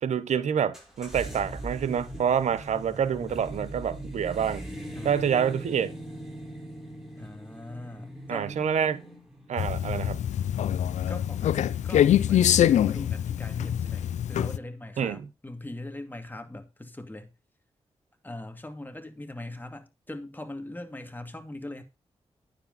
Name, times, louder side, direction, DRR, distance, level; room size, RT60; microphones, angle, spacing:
voice 1, 0.0-4.6 5.0-5.9 8.3-9.0 9.5-10.2 15.0-15.2, right 8 dB, 85° right, 0.8 m, -27 dB
sound 1, 0.7-12.9, right 1 dB, 5° right, 6.5 m, -41 dB
voice 2, 2.7-3.4 4.9-5.2 7.2-8.5 11.1-17.3 18.2-21.8, left 1 dB, 15° left, 2.4 m, -41 dB
sound 2, 9.6-14.6, left 10 dB, 90° left, 0.4 m, -24 dB
9.7 x 7.8 x 4.0 m
cardioid pair, 50°, 12 cm